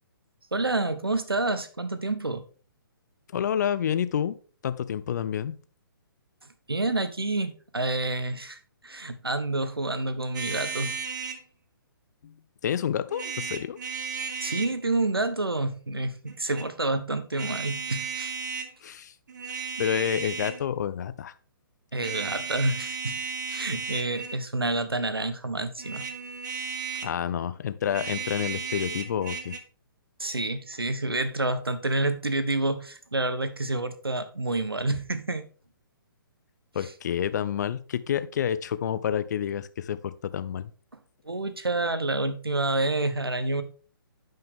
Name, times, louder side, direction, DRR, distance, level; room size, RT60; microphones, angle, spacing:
voice 1, 0.5-2.4 6.7-10.9 14.4-18.3 19.7-19.9 21.9-23.2 23.5-26.1 30.2-35.5 36.8-36.9 41.2-43.6, right 2 dB, 90° right, 1.2 m, -28 dB
voice 2, 3.3-4.4 4.6-5.6 12.2-12.3 12.6-13.8 18.8-19.1 19.8-21.3 27.0-29.5 36.7-40.7, left 9 dB, 50° left, 0.7 m, -29 dB
sound 1, 10.3-11.4 13.1-14.7 16.3-16.7 17.3-18.7 19.3-20.7 22.0-24.4 25.8-27.2 27.8-29.6, right 6 dB, 50° right, 1.3 m, -34 dB
10.5 x 5.7 x 3.6 m
figure-of-eight pair, 135°, 12 cm